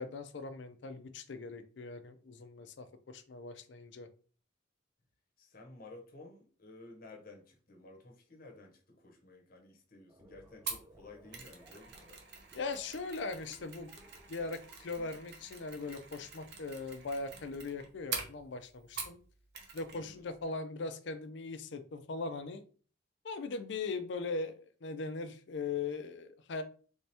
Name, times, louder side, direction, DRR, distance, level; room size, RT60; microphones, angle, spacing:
voice 1, 0.0-4.1 12.5-13.9 14.3-19.2 19.7-22.6 23.2-26.6, left 3 dB, 65° left, 9 dB, 0.5 m, -40 dB
voice 2, 5.4-12.2 19.9-20.2, left 2 dB, 50° left, 2 dB, 0.8 m, -54 dB
sound 1, 10.1-15.2, right 1 dB, 15° right, 0.4 m, -62 dB
Mechanisms, 10.7-19.3 19.5-20.0 20.3-20.4, right 5 dB, 60° right, 0.7 m, -45 dB
3.4 x 2.8 x 3.3 m, 0.41 s
head